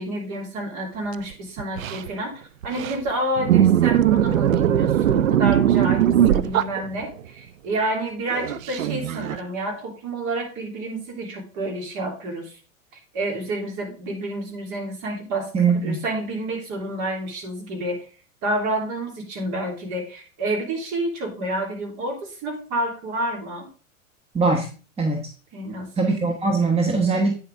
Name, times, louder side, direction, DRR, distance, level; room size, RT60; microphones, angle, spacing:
voice 1, 0.0-12.6 13.1-15.5 15.8-18.0 18.4-23.7 25.5-25.9, right 1 dB, 45° right, 1 dB, 3.4 m, -29 dB
sound 1, 1.3-1.4 1.6-2.1 2.6-3.1 3.4-7.2 8.3-9.4, right 11 dB, 85° right, 0.6 m, -20 dB
voice 2, 15.5-16.0 24.3-24.7 25.0-25.3 26.0-27.4, right 4 dB, 15° right, 4 dB, 1.1 m, -21 dB
8.9 x 7.1 x 3.6 m, 0.36 s
hypercardioid pair, 95°, 40 cm